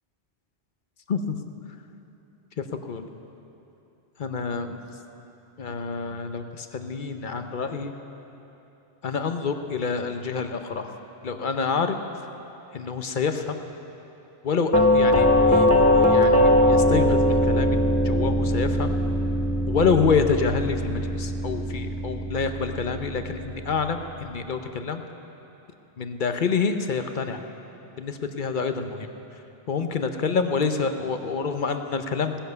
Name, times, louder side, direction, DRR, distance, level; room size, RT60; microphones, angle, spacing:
voice 1, 4.2-4.8 5.6-7.9 9.0-11.0 11.2-12.0 12.7-13.6 14.4-15.7 16.0-18.9 19.7-25.0 26.0-27.4 28.0-29.1 29.7-32.4, left 5 dB, 50° left, 7 dB, 0.9 m, -27 dB
Doorbell, 14.7-23.6, left 1 dB, 15° left, 1.0 m, -21 dB
17.5 x 10.0 x 6.8 m, 3.0 s
omnidirectional pair, 1.1 m